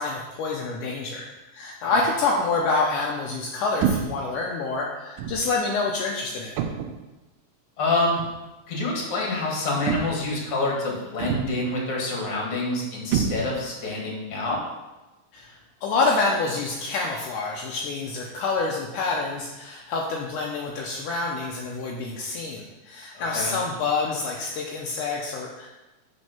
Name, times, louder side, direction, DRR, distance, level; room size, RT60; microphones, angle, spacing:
voice 1, 0.0-6.6 15.3-25.7, left 3 dB, 80° left, -2 dB, 2.2 m, -27 dB
sound 1, 3.8-4.3 5.2-5.5 6.6-7.1 8.2-8.4 9.9-10.4 11.2-11.7 13.1-13.8, right 7 dB, 80° right, 2.1 m, -27 dB
voice 2, 7.8-8.2 8.7-14.6 23.1-23.5, left 2 dB, 50° left, -2 dB, 2.4 m, -27 dB
6.3 x 5.3 x 5.8 m, 1.1 s
omnidirectional pair, 3.9 m